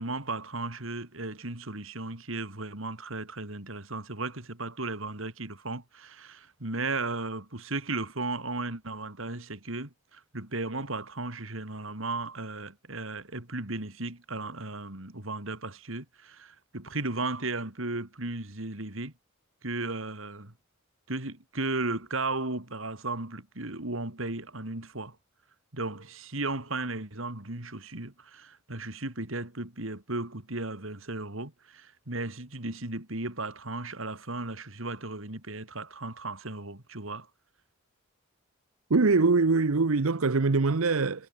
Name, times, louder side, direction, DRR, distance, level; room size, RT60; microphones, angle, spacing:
voice 1, 0.0-19.1 19.6-20.5 21.1-25.1 25.7-37.3, right 2 dB, 70° right, 3.3 m, -35 dB
voice 2, 38.9-41.3, right 3 dB, 85° right, 0.9 m, -23 dB
head